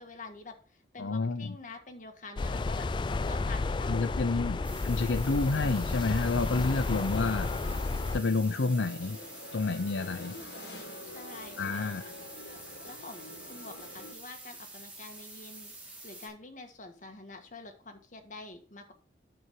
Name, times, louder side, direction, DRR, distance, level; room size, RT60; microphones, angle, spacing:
voice 1, 0.0-2.9 3.2-4.7 6.7-7.2 11.0-12.2 12.9-18.9, left 3 dB, 40° left, 1.7 m, -47 dB
voice 2, 1.0-1.6 3.9-7.5 8.1-9.2 9.5-10.4 11.6-12.0, left 3 dB, 80° left, 0.6 m, -29 dB
sound 1, 2.4-8.2, left 3 dB, 25° left, 0.3 m, -32 dB
sound 2, 3.1-14.1, left 2 dB, 60° left, 2.1 m, -48 dB
sound 3, 4.6-16.3, right 2 dB, 10° right, 2.9 m, -48 dB
9.5 x 7.1 x 4.7 m
head